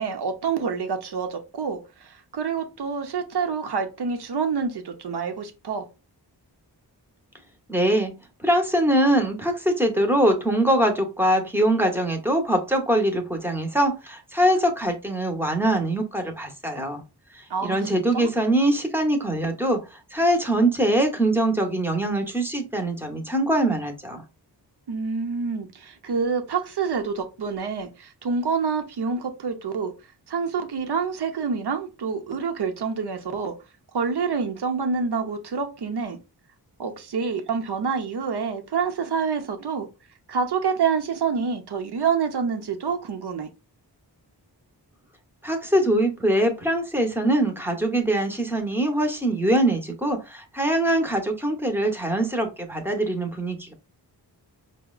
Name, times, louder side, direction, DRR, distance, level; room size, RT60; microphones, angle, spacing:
voice 1, 0.0-5.9 17.5-18.3 24.9-29.9 30.3-33.5 33.9-36.2 36.8-39.9 40.3-43.5, right 5 dB, 65° right, 0.8 m, -27 dB
voice 2, 7.7-8.1 8.4-17.0 17.3-24.2 45.4-53.7, right 1 dB, 5° right, 0.8 m, -23 dB
4.7 x 2.1 x 2.3 m
cardioid pair, 60°, 42 cm